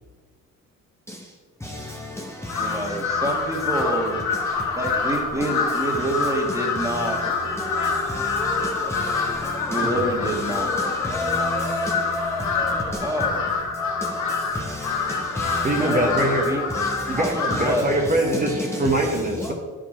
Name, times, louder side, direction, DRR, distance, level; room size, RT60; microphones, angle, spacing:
voice 1, 1.6-3.1 4.3-4.8 6.8-9.9 10.5-13.4 13.7-16.1 16.7-17.2 17.5-17.9 18.7-18.8 19.4-19.5, left 1 dB, 10° left, 0.9 m, -32 dB
voice 2, 2.2-4.2 4.8-7.2 9.7-10.7 13.0-13.5 15.7-16.6 17.2-17.9, right 1 dB, 10° right, 1.6 m, -27 dB
Crow, 2.5-17.8, left 5 dB, 70° left, 1.4 m, -26 dB
voice 3, 15.6-16.5 17.1-19.5, right 1 dB, 25° right, 1.1 m, -23 dB
10.0 x 5.1 x 4.4 m
cardioid pair, 90°, 30 cm